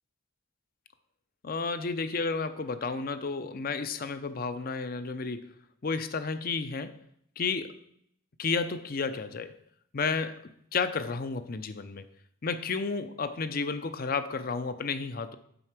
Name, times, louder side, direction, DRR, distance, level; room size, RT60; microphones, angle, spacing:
voice 1, 1.4-5.5 5.8-7.0 7.4-7.8 8.4-9.6 9.9-12.1 12.4-15.4, left 4 dB, 45° left, 11 dB, 0.5 m, -32 dB
7.8 x 5.7 x 5.9 m, 0.69 s
head